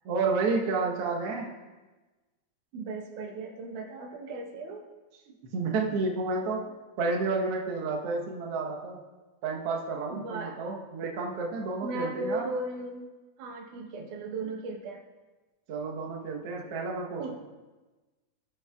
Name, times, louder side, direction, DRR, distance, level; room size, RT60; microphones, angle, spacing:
voice 1, 0.0-1.5 5.5-6.6 7.0-9.0 9.4-12.4 15.7-17.3, right 3 dB, 60° right, -1 dB, 1.7 m, -30 dB
voice 2, 2.7-4.8 10.1-10.6 11.8-13.1 13.4-15.0 16.6-16.7 17.2-17.3, right 2 dB, 80° right, 4 dB, 2.3 m, -36 dB
18.0 x 6.3 x 2.3 m, 1.2 s
omnidirectional pair, 3.6 m